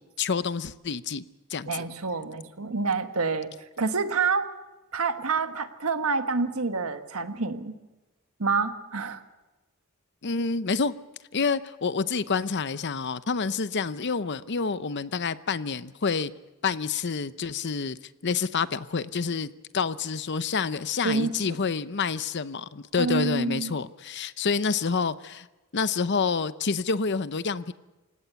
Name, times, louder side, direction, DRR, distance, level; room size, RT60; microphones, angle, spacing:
voice 1, 0.2-1.2 1.5-1.8 10.2-10.9 11.3-16.3 16.6-25.5 25.7-27.7, left 5 dB, 55° left, 15 dB, 0.7 m, -28 dB
voice 2, 1.7-3.5 3.8-4.5 4.9-7.7 8.4-9.2 21.0-21.6 23.0-23.7, right 4 dB, 85° right, 8 dB, 1.6 m, -27 dB
28.5 x 17.5 x 7.0 m, 1.1 s
head